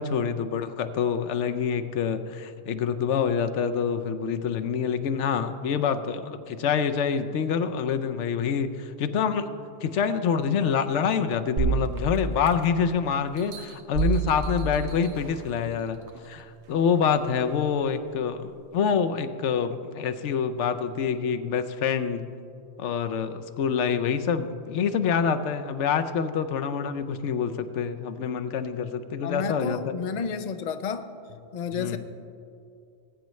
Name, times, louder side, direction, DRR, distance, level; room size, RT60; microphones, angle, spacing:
voice 1, 0.0-22.3 22.8-29.9 31.7-32.0, left 6 dB, 85° left, 9 dB, 1.0 m, -26 dB
sound 1, 11.6-12.9 13.4-15.5 16.1-16.2, right 5 dB, 80° right, 1.2 m, -29 dB
voice 2, 29.2-31.1 31.5-32.0, left 6 dB, 50° left, 9 dB, 0.6 m, -31 dB
20.0 x 8.9 x 3.2 m, 2.5 s
omnidirectional pair, 1.2 m